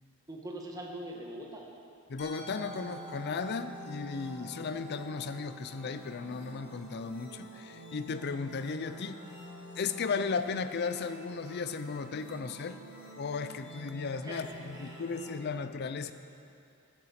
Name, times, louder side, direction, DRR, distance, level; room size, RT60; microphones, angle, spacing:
voice 1, 0.3-1.7 14.2-15.0, right 1 dB, 15° right, -1 dB, 1.3 m, -42 dB
voice 2, 2.1-9.2 9.8-12.8 13.1-16.1, left 5 dB, 50° left, 11 dB, 0.4 m, -35 dB
Musical instrument, 2.2-8.1, right 2 dB, 35° left, 2.1 m, -51 dB
sound 1, 2.4-15.4, equal, 75° left, 2.2 m, -49 dB
10.5 x 8.9 x 5.8 m, 2.6 s
head